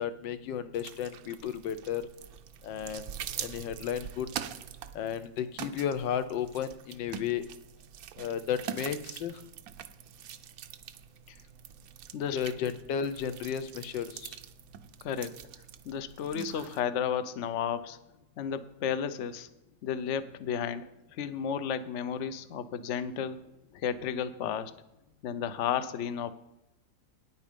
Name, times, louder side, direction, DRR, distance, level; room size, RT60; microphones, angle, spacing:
voice 1, 0.0-2.0 2.6-3.1 3.4-4.3 4.9-7.4 8.2-9.4 12.3-14.4, left 8 dB, 80° left, 11 dB, 1.4 m, -33 dB
sound 1, 0.7-16.8, right 9 dB, 70° right, 0.9 m, -44 dB
voice 2, 15.9-18.0 18.4-19.5 19.8-20.8 21.2-23.4 23.7-24.7 25.2-26.3, left 8 dB, 65° left, 12 dB, 0.7 m, -32 dB
9.6 x 8.6 x 5.2 m, 0.87 s
omnidirectional pair, 2.0 m